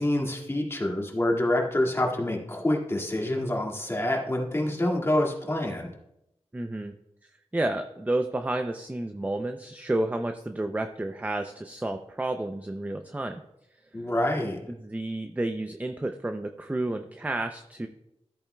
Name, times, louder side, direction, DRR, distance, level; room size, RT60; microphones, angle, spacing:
voice 1, 0.0-5.9 13.9-14.6, left 1 dB, 25° left, -2 dB, 2.1 m, -27 dB
voice 2, 6.5-6.9 7.5-13.4 13.9-14.0 14.7-17.9, right 2 dB, 15° right, 6 dB, 0.5 m, -31 dB
13.5 x 8.7 x 2.3 m, 0.84 s
wide cardioid pair, 75°, 11 cm